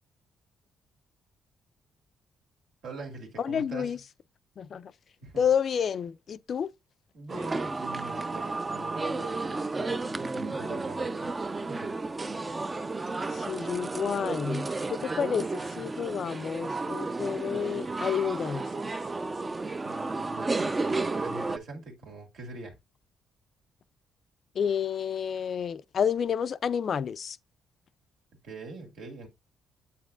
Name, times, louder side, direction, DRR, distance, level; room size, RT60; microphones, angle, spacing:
voice 1, 2.8-4.0 5.2-5.4 7.1-11.9 19.8-22.8 28.4-29.3, right 3 dB, 75° right, 2.2 m, -43 dB
voice 2, 3.4-4.0 4.6-4.9 5.4-6.7 13.3-18.7 24.5-27.4, left 7 dB, 55° left, 0.4 m, -30 dB
sound 1, 7.3-21.6, right 3 dB, 25° right, 0.5 m, -32 dB
7.8 x 5.8 x 2.4 m
cardioid pair, 90°, 0 cm